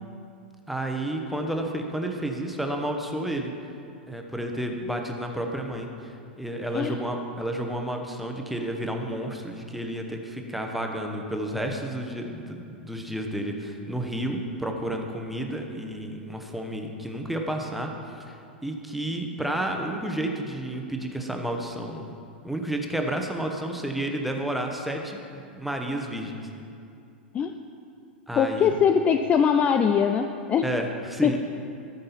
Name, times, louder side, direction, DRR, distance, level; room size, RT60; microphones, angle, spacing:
voice 1, 0.7-3.5 4.1-22.1 22.4-26.4 28.3-28.7 30.6-31.4, right 1 dB, ahead, 2 dB, 1.0 m, -31 dB
voice 2, 28.3-30.7 31.2-31.4, left 7 dB, 25° left, 7 dB, 0.4 m, -22 dB
13.0 x 5.3 x 5.7 m, 2.6 s
figure-of-eight pair, 95°, 6 cm